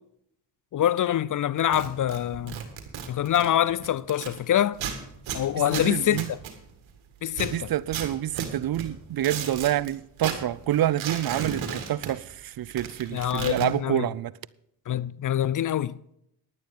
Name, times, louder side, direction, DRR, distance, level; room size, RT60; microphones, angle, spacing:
voice 1, 0.7-2.6 3.1-4.8 5.3-6.4 7.2-7.7 13.1-14.1 14.9-15.9, left 11 dB, 45° left, 0.4 m, -25 dB
sound 1, 1.6-4.4 4.7-7.0 7.3-9.9 10.2-12.4 12.7-13.7, right 7 dB, 75° right, 1.8 m, -35 dB
voice 2, 5.8-6.3 7.4-14.3, right 12 dB, 50° right, 0.5 m, -27 dB
11.0 x 9.5 x 5.3 m
supercardioid pair, 55°, 47 cm